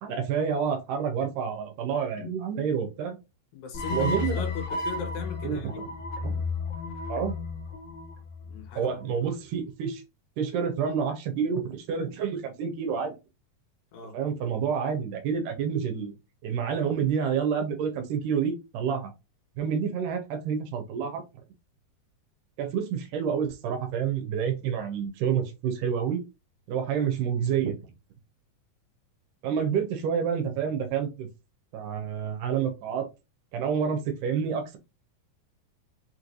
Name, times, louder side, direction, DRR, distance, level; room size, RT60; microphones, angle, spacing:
voice 1, 0.0-3.2 3.9-4.4 5.4-5.9 6.2-6.4 7.1-7.3 8.8-10.0 10.4-13.1 14.1-16.1 16.4-19.1 19.6-21.2 22.6-26.2 26.7-27.9 29.4-31.3 31.7-33.1 33.5-34.8, right 7 dB, 80° right, 2.3 m, -28 dB
voice 2, 3.5-5.8 8.5-9.1 13.9-14.2, left 8 dB, 90° left, 2.8 m, -37 dB
sound 1, 3.7-9.0, left 3 dB, 50° left, 1.5 m, -33 dB
5.8 x 3.2 x 2.6 m
omnidirectional pair, 4.0 m